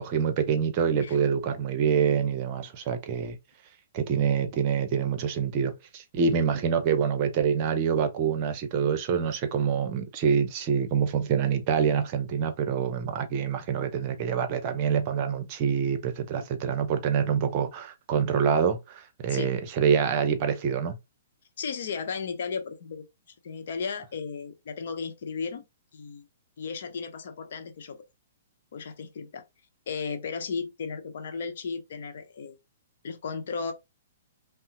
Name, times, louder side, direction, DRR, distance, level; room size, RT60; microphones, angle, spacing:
voice 1, 0.0-3.4 3.9-21.0, right 7 dB, 35° right, 0.7 m, -26 dB
voice 2, 21.6-23.1 23.4-25.6 25.9-26.3 26.6-28.0 28.7-29.4 29.9-32.5 33.0-33.7, left 5 dB, 55° left, 0.8 m, -35 dB
5.5 x 2.1 x 2.9 m
figure-of-eight pair, 115°, 0 cm